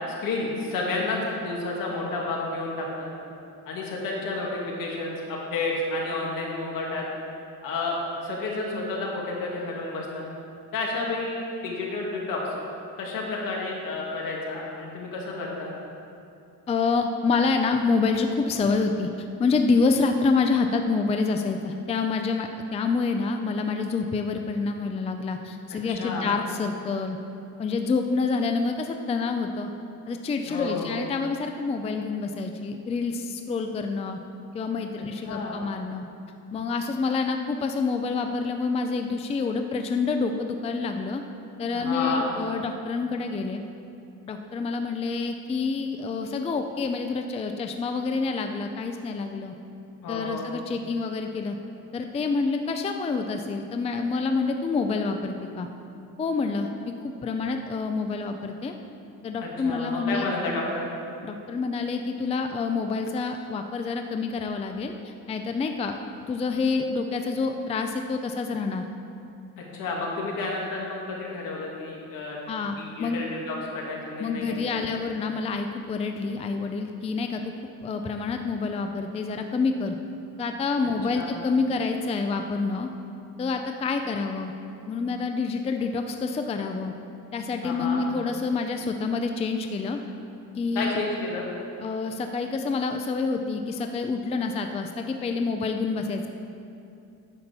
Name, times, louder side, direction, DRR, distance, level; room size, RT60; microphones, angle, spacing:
voice 1, 0.1-3.1 3.7-7.0 7.6-10.3 10.7-12.5 13.0-15.7 25.9-26.3 30.4-31.0 35.2-35.6 41.7-42.3 50.0-50.5 59.4-60.9 69.6-72.4 72.8-75.0 81.1-81.3 87.6-88.0 90.7-91.5, left 3 dB, 70° left, -3 dB, 2.5 m, -31 dB
voice 2, 16.7-19.1 19.4-27.2 27.6-29.7 30.1-34.2 34.5-36.0 36.5-41.2 41.6-43.6 44.3-49.5 50.1-51.6 51.9-55.7 56.2-58.7 59.2-60.3 61.2-66.0 66.3-68.8 72.5-73.2 74.2-77.4 77.8-80.0 80.4-82.9 83.4-84.5 84.9-86.9 87.3-90.0 90.5-91.0 91.8-96.3, left 4 dB, 20° left, 5 dB, 0.4 m, -27 dB
9.8 x 7.1 x 6.8 m, 2.7 s
cardioid pair, 155°, 35 cm